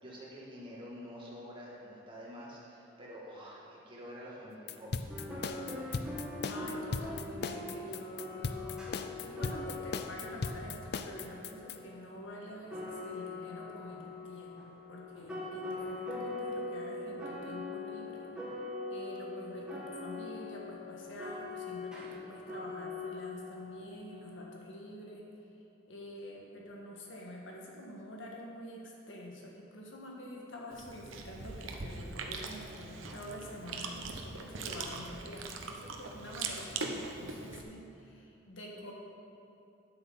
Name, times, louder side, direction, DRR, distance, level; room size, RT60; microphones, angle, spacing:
voice 1, 0.0-5.1, equal, 25° right, -5 dB, 2.0 m, -47 dB
sound 1, 4.7-11.8, left 4 dB, 50° left, 0.5 m, -37 dB
sound 2, 5.1-24.4, left 3 dB, 5° right, 1.6 m, -42 dB
voice 2, 6.5-8.9 9.2-18.3 18.9-25.2 25.9-38.9, equal, 70° left, -2 dB, 1.6 m, -47 dB
Chewing mastication, 30.7-37.6, right 4 dB, 75° right, 0.9 m, -41 dB
9.8 x 8.1 x 5.4 m, 2.7 s
head